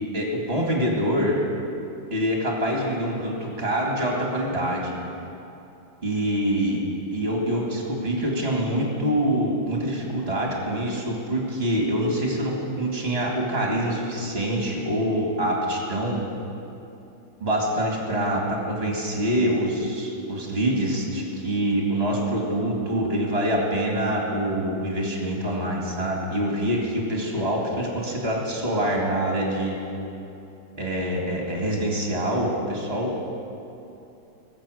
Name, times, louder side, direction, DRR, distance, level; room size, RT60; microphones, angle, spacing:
voice 1, 0.1-1.4 2.1-4.9 6.0-6.8 7.1-16.2 17.4-29.8 30.8-33.1, right 1 dB, 30° right, -2 dB, 2.5 m, -25 dB
21.0 x 7.6 x 6.5 m, 2.8 s
omnidirectional pair, 2.3 m